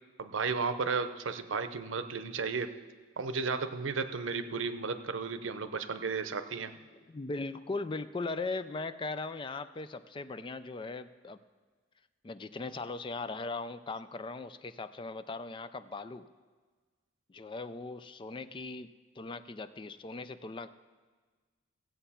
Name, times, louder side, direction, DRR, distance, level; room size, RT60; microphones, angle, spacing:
voice 1, 0.2-2.7 3.2-6.7, right 5 dB, 90° right, 11 dB, 0.7 m, -34 dB
voice 2, 7.1-11.4 12.2-16.3 17.3-18.9 19.2-20.8, left 3 dB, 25° left, 12 dB, 0.4 m, -39 dB
16.0 x 8.0 x 5.7 m, 1.4 s
head